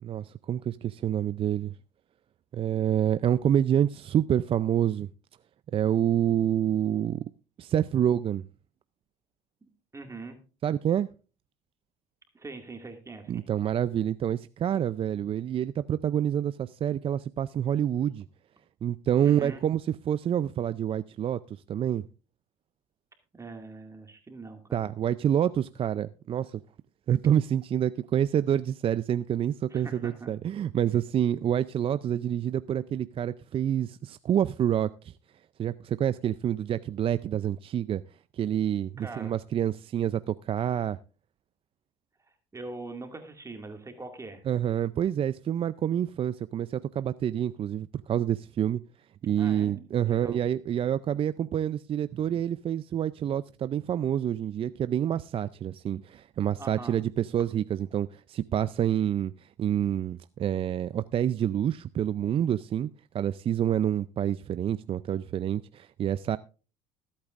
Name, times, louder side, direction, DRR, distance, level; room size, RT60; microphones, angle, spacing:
voice 1, 0.0-1.7 2.5-5.1 5.7-7.2 7.6-8.4 10.6-11.1 13.3-18.3 18.8-22.0 24.7-26.6 27.1-35.1 35.6-38.0 38.3-41.0 44.5-48.8 49.2-62.9 63.1-66.4, right 10 dB, 40° right, 0.5 m, -27 dB
voice 2, 9.6-10.4 12.3-13.4 19.2-19.6 23.3-24.9 29.7-30.3 39.0-39.4 42.5-44.4 49.4-49.8 50.0-50.4 56.6-57.0, right 3 dB, 20° right, 2.2 m, -42 dB
21.0 x 8.7 x 2.5 m
hypercardioid pair, 75°, 14 cm